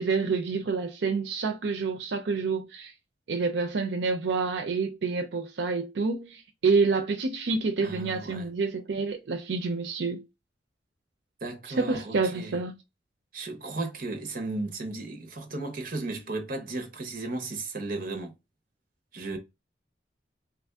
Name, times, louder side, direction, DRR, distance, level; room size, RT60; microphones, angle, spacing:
voice 1, 0.0-2.9 3.3-10.2 11.7-12.7, right 4 dB, 80° right, 0.5 m, -28 dB
voice 2, 7.8-8.5 11.4-12.5 13.3-18.3 19.1-19.4, right 2 dB, 55° right, 0.9 m, -35 dB
3.1 x 2.5 x 3.4 m
head